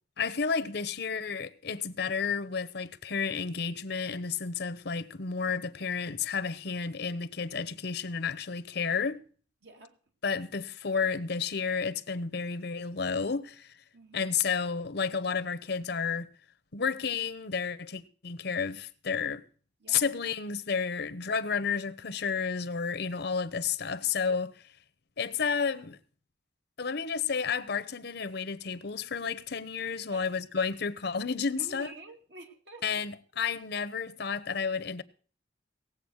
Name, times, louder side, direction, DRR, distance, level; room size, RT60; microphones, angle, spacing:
voice 1, 0.2-9.2 10.2-13.7 14.1-16.3 16.7-19.4 19.9-24.6 25.2-26.0 26.8-31.9 32.8-35.0, left 5 dB, 65° left, 0.8 m, -31 dB
voice 2, 9.6-10.0 13.9-14.3 19.8-20.1 24.0-24.2 30.1-30.3 31.6-32.9, right 2 dB, 70° right, 2.5 m, -48 dB
18.0 x 7.9 x 6.3 m
head